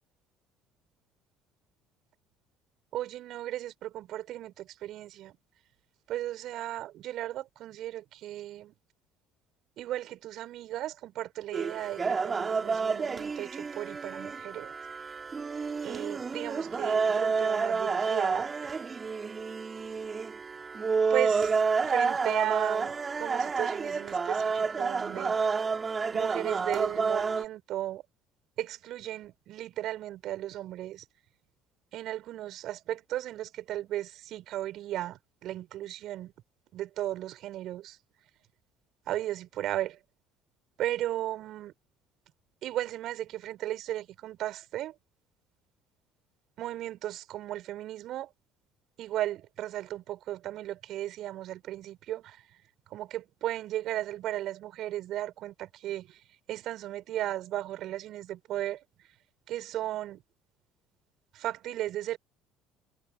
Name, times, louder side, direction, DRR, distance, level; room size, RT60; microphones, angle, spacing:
voice 1, 2.9-5.4 6.1-8.7 9.8-14.7 15.8-18.7 21.1-25.5 26.1-28.0 28.6-31.0 31.9-36.3 36.7-38.0 39.1-40.0 40.8-41.7 42.6-45.0 46.6-48.3 49.0-52.4 52.9-56.2 56.5-58.8 59.5-60.2 61.3-62.2, right 13 dB, 55° right, 4.8 m, -35 dB
sound 1, 11.5-27.4, right 5 dB, 30° right, 3.0 m, -29 dB
figure-of-eight pair, 55°, 0 cm